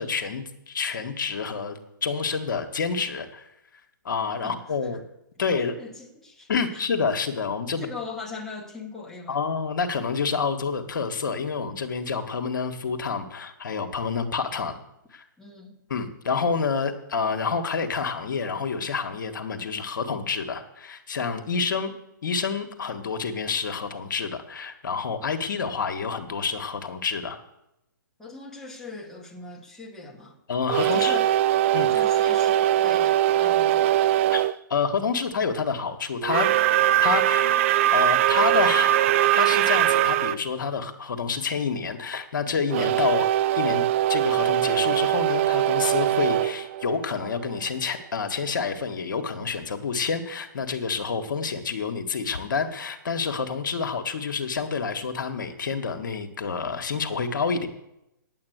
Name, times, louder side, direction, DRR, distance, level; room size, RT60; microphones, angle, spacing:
voice 1, 0.0-3.5 4.0-5.0 5.4-5.7 6.5-7.9 9.3-14.8 15.1-15.2 15.9-21.9 22.2-27.4 30.5-31.2 31.7-32.0 34.3-34.4 34.7-36.5 37.0-37.6 37.9-39.1 39.3-43.3 43.5-43.8 44.1-57.7, left 5 dB, 70° left, 1.7 m, -28 dB
voice 2, 5.4-6.5 7.8-9.4 15.4-15.9 28.2-30.4 30.9-31.3 31.9-34.1, left 3 dB, 5° left, 2.1 m, -40 dB
sound 1, 30.7-34.5 36.2-40.4 42.7-47.5, right 13 dB, 35° right, 0.5 m, -22 dB
10.0 x 8.7 x 8.0 m
hypercardioid pair, 140°, 11 cm